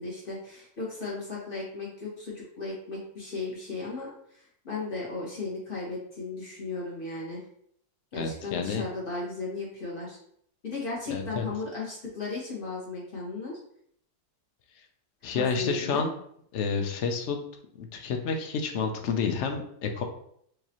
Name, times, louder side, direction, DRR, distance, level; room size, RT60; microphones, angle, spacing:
voice 1, 0.0-7.4 8.1-10.2 10.6-13.6 15.3-16.1, left 3 dB, 35° left, -6 dB, 1.5 m, -36 dB
voice 2, 8.2-8.8 11.1-11.5 15.2-16.1 16.5-17.4 17.8-20.0, left 5 dB, 70° left, 5 dB, 0.7 m, -29 dB
4.7 x 2.8 x 2.9 m, 0.68 s
omnidirectional pair, 1.8 m